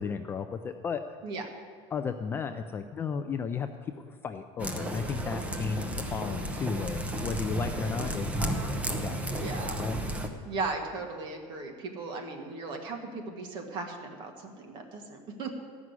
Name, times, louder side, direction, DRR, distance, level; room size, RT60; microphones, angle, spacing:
voice 1, 0.0-1.2 1.9-10.0, left 6 dB, 15° left, 7 dB, 0.3 m, -35 dB
sound 1, 4.6-10.3, right 1 dB, 10° right, 0.8 m, -33 dB
voice 2, 9.4-9.8 10.5-15.5, right 3 dB, 35° right, 3 dB, 1.7 m, -37 dB
14.0 x 6.1 x 9.5 m, 2.1 s
cardioid pair, 175°, 14 cm